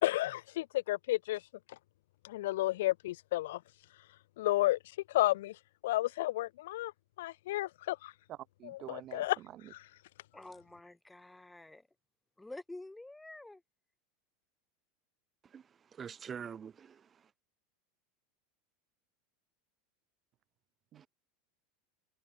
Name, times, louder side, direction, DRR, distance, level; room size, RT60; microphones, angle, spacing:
voice 1, 0.0-1.4 2.2-3.6 4.4-4.8 5.1-5.6 5.8-6.9 7.2-8.1 8.7-9.4, left 16 dB, 75° left, 0.9 m, -31 dB
voice 2, 8.3-9.7 20.9-21.0, right 13 dB, 45° right, 1.4 m, -48 dB
voice 3, 10.3-11.9 12.4-13.6, left 2 dB, 10° left, 7.5 m, -49 dB
voice 4, 15.4-17.3 20.9-21.1, right 7 dB, 30° right, 3.7 m, -46 dB
hypercardioid pair, 95°, 0 cm